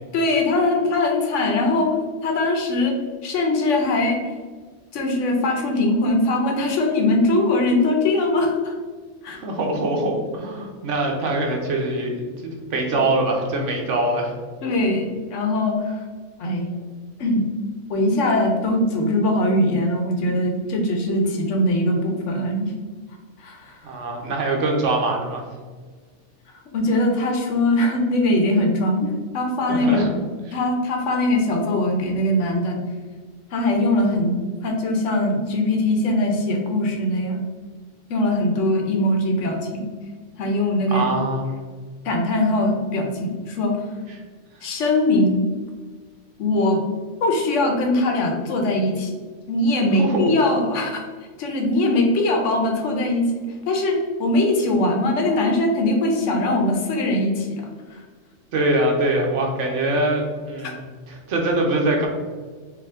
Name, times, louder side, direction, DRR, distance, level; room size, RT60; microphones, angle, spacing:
voice 1, 0.1-1.9 2.2-3.0 3.2-4.2 4.9-8.7 9.2-9.4 14.6-16.0 16.4-16.7 17.2-17.5 17.9-22.7 23.4-23.8 26.7-29.0 29.3-30.0 30.5-32.8 33.5-37.4 38.1-39.8 40.4-41.1 42.0-43.8 44.6-45.4 46.4-46.8 47.2-49.1 49.5-51.0 51.4-53.3 53.7-57.6 57.9-58.0 60.6-60.7, left 1 dB, 85° left, 2 dB, 1.2 m, -21 dB
voice 2, 9.3-14.4 23.8-25.5 29.7-30.1 30.5-30.6 40.9-41.5 44.1-44.2 50.0-50.3 58.5-60.8 61.1-62.1, right 2 dB, 80° right, 1 dB, 1.2 m, -23 dB
4.8 x 2.7 x 3.6 m, 1.5 s
omnidirectional pair, 1.2 m